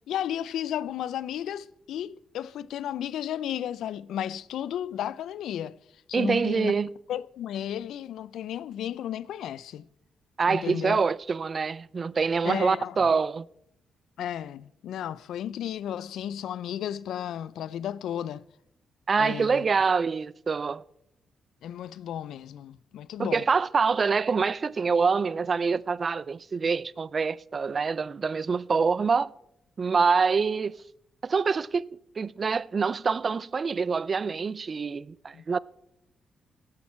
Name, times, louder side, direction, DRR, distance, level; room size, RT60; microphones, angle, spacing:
voice 1, 0.0-5.8 6.1-6.7 7.1-9.9 10.5-11.0 12.4-12.9 14.2-18.4 19.2-19.6 21.6-23.5 35.3-35.4, left 10 dB, 85° left, 0.3 m, -33 dB
voice 2, 6.1-6.9 10.4-13.5 19.1-20.8 23.2-29.3 29.8-30.8 31.2-31.9 32.2-35.6, right 5 dB, 45° right, 0.3 m, -25 dB
15.5 x 8.7 x 4.3 m
cardioid pair, 85°, 0 cm